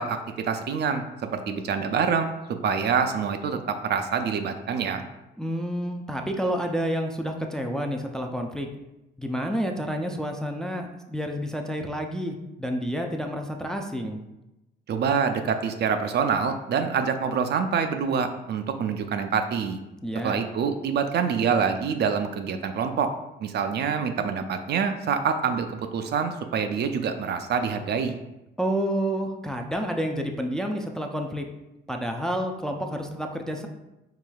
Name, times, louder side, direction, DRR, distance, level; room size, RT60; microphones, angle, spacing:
voice 1, 0.0-2.3 2.6-5.0 14.9-19.8 20.2-23.1 23.4-28.2, right 6 dB, 60° right, 7 dB, 0.4 m, -26 dB
voice 2, 5.4-8.7 9.2-14.2 20.0-20.4 28.6-31.4 31.9-33.7, equal, 5° left, 3 dB, 0.4 m, -29 dB
4.7 x 3.2 x 2.3 m, 0.96 s
cardioid pair, 90°, 20 cm